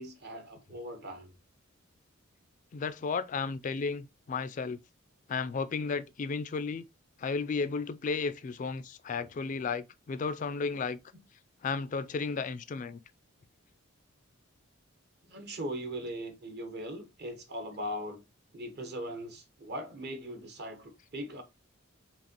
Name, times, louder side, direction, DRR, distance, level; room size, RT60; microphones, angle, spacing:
voice 1, 0.0-1.3 10.7-10.8 15.3-18.2 18.5-21.4, equal, 50° right, 0.9 m, -40 dB
voice 2, 2.7-4.8 5.3-6.8 7.2-11.0 11.6-13.0, left 4 dB, 40° left, 0.3 m, -33 dB
5.0 x 2.9 x 2.9 m
head